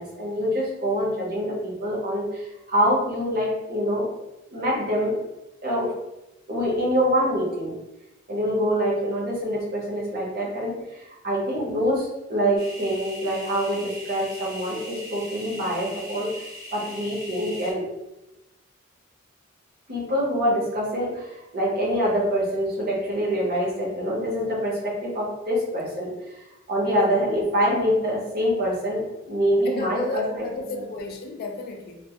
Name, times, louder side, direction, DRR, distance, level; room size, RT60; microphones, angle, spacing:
voice 1, 0.0-4.1 4.5-5.2 5.6-5.9 6.5-7.7 8.3-17.8 19.9-29.0 29.3-30.5 30.7-30.8, equal, 50° right, -5 dB, 0.8 m, -25 dB
sound 1, 12.6-17.7, equal, 5° right, 0.6 m, -40 dB
voice 2, 29.7-32.0, left 2 dB, 50° left, 3 dB, 0.3 m, -32 dB
2.1 x 2.1 x 2.7 m, 0.96 s
head